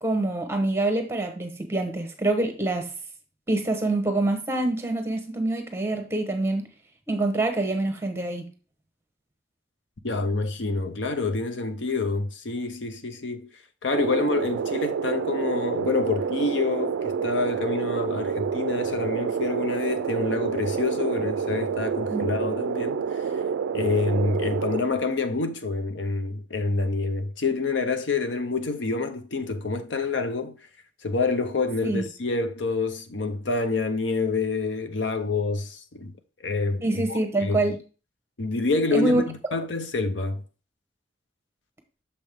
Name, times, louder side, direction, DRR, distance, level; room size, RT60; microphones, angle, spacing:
voice 1, 0.0-2.9 3.5-6.7 7.1-8.5 22.1-22.3 31.8-32.0 36.8-37.8 38.9-39.2, right 2 dB, 15° right, 1.0 m, -25 dB
voice 2, 10.0-13.5 13.8-23.2 23.7-30.5 31.0-37.6 38.4-40.4, left 3 dB, 75° left, 0.7 m, -27 dB
sound 1, 13.9-24.8, right 6 dB, 90° right, 0.3 m, -28 dB
6.7 x 5.3 x 3.5 m
head